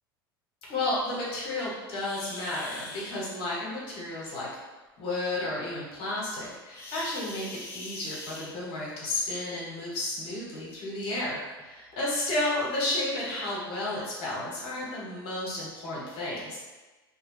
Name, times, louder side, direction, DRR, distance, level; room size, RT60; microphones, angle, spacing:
voice 1, 0.7-4.5 5.0-16.6, left 2 dB, 50° left, -5 dB, 1.1 m, -32 dB
sound 1, 1.9-3.2 6.7-8.9 10.2-10.3 10.9-11.0 11.6-11.7 12.5-12.6 13.1-13.2, left 2 dB, 20° left, 0.6 m, -43 dB
2.2 x 2.1 x 3.3 m, 1.2 s
figure-of-eight pair, 80°, 12 cm